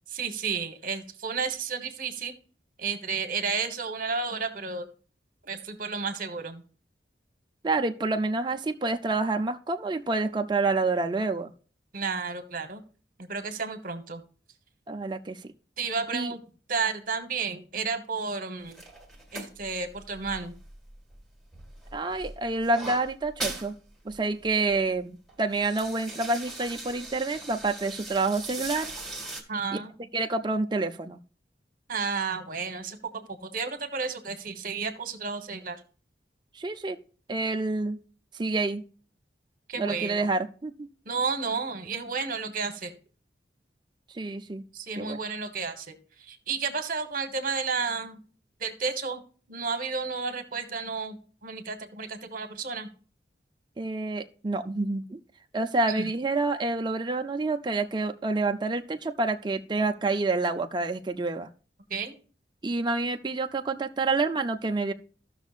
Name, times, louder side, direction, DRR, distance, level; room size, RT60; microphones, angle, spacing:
voice 1, 0.1-2.4 2.8-4.9 5.4-6.6 11.9-12.8 13.2-14.2 15.8-16.4 16.7-18.8 19.3-20.5 29.5-29.9 31.9-35.8 39.7-40.3 41.0-42.9 44.7-48.2 48.6-49.2 49.5-52.9 55.9-56.1 61.9-62.2, right 5 dB, 50° right, 8 dB, 1.2 m, -32 dB
voice 2, 7.6-11.5 14.9-15.4 16.1-16.3 21.9-23.7 24.0-28.9 30.1-31.2 36.5-37.0 37.3-38.0 38.3-38.8 39.8-40.9 44.1-44.6 45.0-45.2 53.8-55.2 55.5-61.5 62.6-64.9, right 3 dB, 25° right, 6 dB, 0.5 m, -28 dB
sound 1, 18.7-21.2 21.5-23.7 24.1-24.2 24.4-24.8 25.3-29.4, right 2 dB, 5° left, 1.7 m, -39 dB
15.0 x 6.2 x 2.4 m, 0.39 s
head